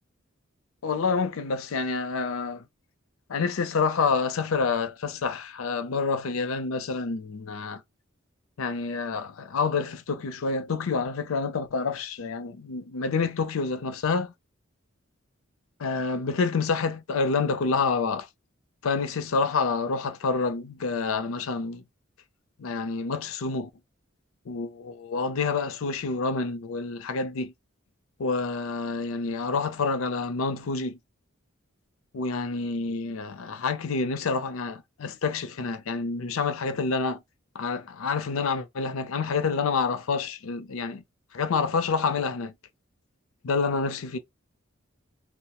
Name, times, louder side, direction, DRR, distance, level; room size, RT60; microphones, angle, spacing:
voice 1, 0.8-2.6 3.3-7.8 8.6-14.3 15.8-18.3 18.8-21.8 22.6-23.7 24.5-27.5 28.2-31.0 32.1-37.2 37.5-41.0 41.3-42.5 43.4-44.2, left 4 dB, 85° left, 0.5 m, -28 dB
2.9 x 2.0 x 2.2 m
head